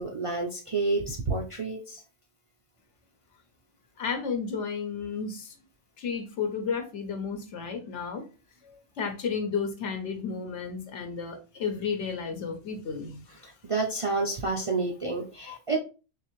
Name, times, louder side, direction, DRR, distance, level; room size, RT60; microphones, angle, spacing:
voice 1, 0.0-2.0 13.4-15.8, right 3 dB, 50° right, 0.4 m, -29 dB
voice 2, 4.0-5.5 6.0-8.2 8.6-13.3 14.6-14.7 15.4-15.6, left 5 dB, 65° left, 1.0 m, -33 dB
3.7 x 3.2 x 3.0 m
omnidirectional pair, 1.3 m